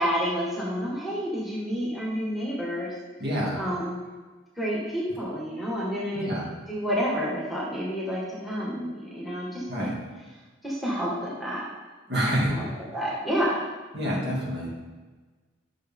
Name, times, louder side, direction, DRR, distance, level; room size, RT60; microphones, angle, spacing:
voice 1, 0.0-2.9 3.6-4.0 4.6-6.3 6.7-9.9 10.6-11.7 12.4-12.6 12.9-13.7, equal, ahead, -6 dB, 1.8 m, -29 dB
voice 2, 3.2-3.6 6.1-6.5 9.7-10.0 12.1-12.6 13.9-14.7, equal, 55° right, -5 dB, 2.6 m, -27 dB
11.0 x 6.5 x 3.7 m, 1.3 s
head